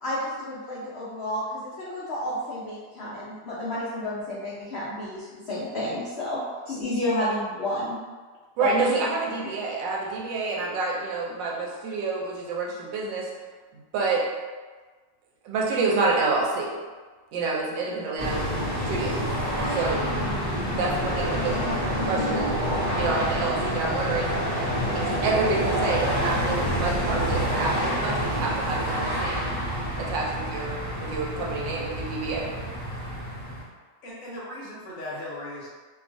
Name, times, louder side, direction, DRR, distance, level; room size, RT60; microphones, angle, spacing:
voice 1, 0.0-6.4 6.6-8.0 8.6-9.0 9.4-9.5, left 1 dB, 85° left, -9 dB, 0.5 m, -31 dB
voice 2, 8.6-13.3 13.7-14.3 15.4-16.8 17.3-19.2 19.6-20.2 20.8-22.6 22.9-24.3 24.9-29.4 30.0-32.6, right 3 dB, 85° right, -2 dB, 1.3 m, -28 dB
sound 1, 18.2-33.6, equal, 25° right, 0.8 m, -27 dB
voice 3, 34.0-35.7, left 1 dB, 60° left, -7 dB, 1.1 m, -37 dB
2.9 x 2.3 x 2.5 m, 1.4 s
omnidirectional pair, 1.9 m